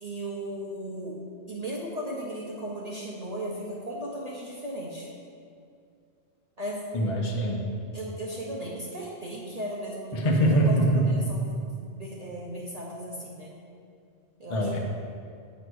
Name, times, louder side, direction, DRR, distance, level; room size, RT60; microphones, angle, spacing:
voice 1, 0.0-1.2 1.5-5.1 6.6-6.8 7.9-13.6 14.4-14.8, right 1 dB, 40° right, -5 dB, 0.9 m, -36 dB
voice 2, 6.9-7.7 10.1-11.0 14.5-14.8, right 1 dB, 35° left, -1 dB, 0.6 m, -23 dB
8.0 x 3.1 x 6.1 m, 2.4 s
omnidirectional pair, 1.2 m